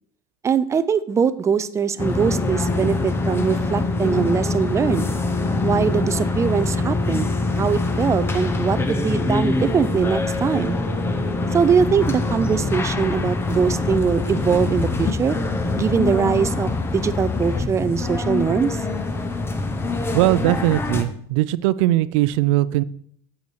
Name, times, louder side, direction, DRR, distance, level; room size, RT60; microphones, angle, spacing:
voice 1, 0.4-5.1 5.6-7.3 7.6-10.8 11.5-15.4 15.8-18.8, right 6 dB, 20° right, 14 dB, 0.4 m, -22 dB
sound 1, 2.0-21.0, left 3 dB, 15° left, 0.8 m, -24 dB
voice 2, 20.1-22.8, right 16 dB, 80° right, 17 dB, 0.5 m, -20 dB
8.3 x 7.8 x 4.6 m, 0.64 s
cardioid pair, 150°, 16 cm